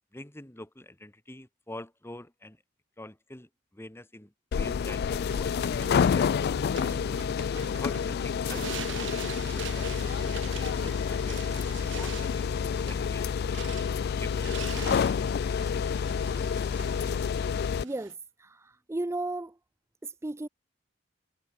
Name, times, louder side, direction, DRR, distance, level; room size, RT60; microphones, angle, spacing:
voice 1, 0.1-2.6 3.0-7.0 7.6-8.7 9.0-13.4 14.2-15.0, left 1 dB, 15° left, 1.7 m, -46 dB
sound 1, 4.5-17.8, left 6 dB, 55° left, 0.3 m, -28 dB
sound 2, 5.2-18.1, right 7 dB, 70° right, 1.0 m, -44 dB
voice 2, 17.8-19.6 20.0-20.5, right 2 dB, 15° right, 0.4 m, -35 dB
head